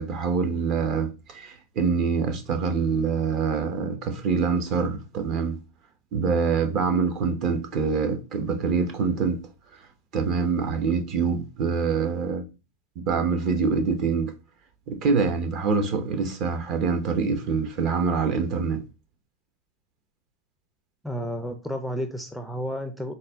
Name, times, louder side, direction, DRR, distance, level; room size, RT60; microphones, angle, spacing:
voice 1, 0.0-5.6 6.1-9.4 10.1-12.4 13.1-14.3 14.9-18.8, right 5 dB, 45° right, 0.8 m, -25 dB
voice 2, 21.0-23.1, equal, ahead, 0.4 m, -31 dB
4.0 x 2.1 x 3.4 m
supercardioid pair, 125°, 0 cm